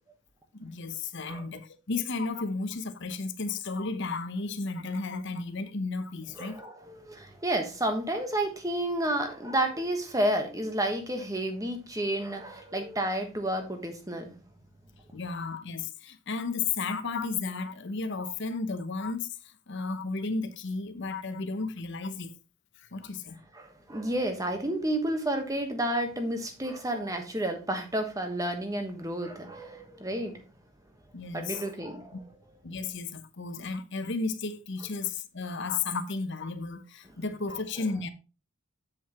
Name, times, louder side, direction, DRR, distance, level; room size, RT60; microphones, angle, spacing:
voice 1, 0.5-6.6 15.1-22.3 22.8-23.4 31.1-31.6 32.1-32.2 32.6-38.1, left 4 dB, 50° left, 0.8 m, -33 dB
voice 2, 6.4-14.3 23.5-30.4 31.3-32.2, right 1 dB, 15° right, 1.2 m, -31 dB
7.9 x 7.4 x 3.0 m
head